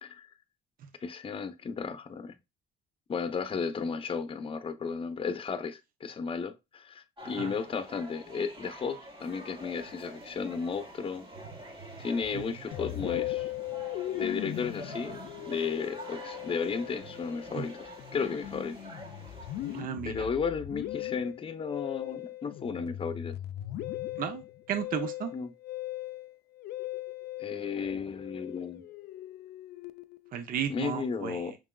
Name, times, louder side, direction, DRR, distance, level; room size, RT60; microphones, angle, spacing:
voice 1, 1.0-2.4 3.1-11.3 12.0-13.5 14.1-18.8 20.0-23.4 25.3-25.5 27.4-28.8 30.7-31.6, left 5 dB, 30° left, 0.7 m, -34 dB
sound 1, 7.2-19.8, right 1 dB, 30° right, 2.3 m, -46 dB
Musical instrument, 12.7-30.3, left 14 dB, 70° left, 0.5 m, -39 dB
voice 2, 19.7-20.3 24.2-25.3 30.3-31.4, right 9 dB, 55° right, 0.7 m, -34 dB
6.1 x 3.5 x 2.2 m
cardioid pair, 110°, 17 cm